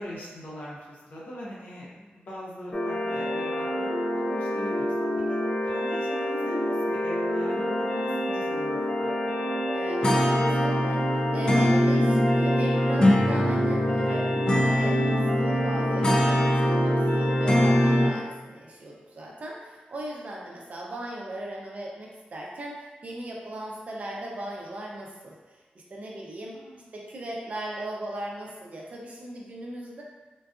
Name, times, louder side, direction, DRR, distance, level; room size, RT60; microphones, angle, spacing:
voice 1, 0.0-5.4 5.6-9.3 26.5-26.9, equal, 60° left, -6 dB, 0.6 m, -41 dB
sound 1, 2.7-18.1, equal, 25° left, 0.4 m, -24 dB
voice 2, 9.7-25.6 25.9-26.5 26.9-30.0, right 1 dB, 45° right, -2 dB, 0.5 m, -38 dB
3.7 x 2.4 x 2.4 m, 1.2 s
wide cardioid pair, 170°, 3 cm